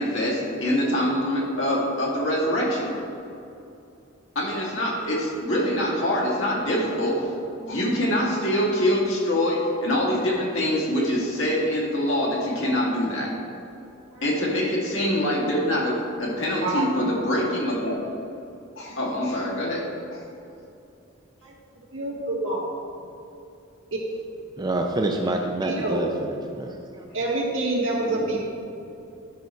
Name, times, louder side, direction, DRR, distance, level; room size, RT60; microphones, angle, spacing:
voice 1, 0.0-2.9 4.4-7.3 7.6-13.3 14.2-18.0 18.8-19.9 20.1-20.2 27.9-28.2, equal, 70° left, -4 dB, 2.1 m, -24 dB
voice 2, 16.6-17.1 21.9-22.7 25.6-26.1 27.1-28.4, right 2 dB, 70° right, -4 dB, 1.8 m, -27 dB
voice 3, 24.6-27.0, right 1 dB, 20° right, 2 dB, 0.4 m, -27 dB
10.5 x 5.6 x 4.4 m, 2.7 s
head